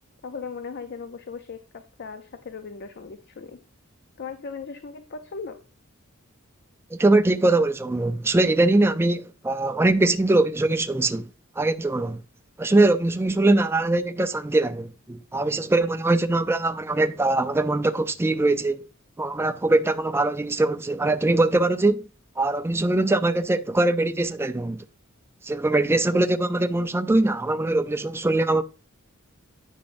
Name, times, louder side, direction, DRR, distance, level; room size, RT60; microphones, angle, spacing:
voice 1, 0.2-3.6 4.2-5.6, left 5 dB, 50° left, 0.5 m, -38 dB
voice 2, 6.9-11.3 11.6-12.2 12.6-18.8 19.2-22.1 22.4-24.8 25.4-28.6, right 2 dB, 10° right, 0.3 m, -22 dB
8.7 x 6.3 x 2.5 m
head